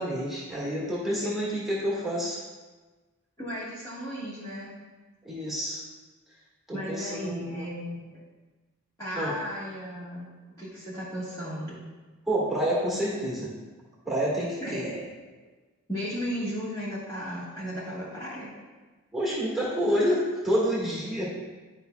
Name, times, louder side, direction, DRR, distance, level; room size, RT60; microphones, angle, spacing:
voice 1, 0.0-2.4 5.2-5.8 6.7-7.7 9.1-9.3 12.3-13.5 14.0-15.0 19.1-21.2, equal, ahead, -7 dB, 1.7 m, -28 dB
voice 2, 3.4-4.7 6.7-8.2 9.0-11.8 14.6-14.8 15.9-18.5, equal, 15° left, -10 dB, 1.5 m, -35 dB
11.0 x 5.1 x 2.3 m, 1.3 s
head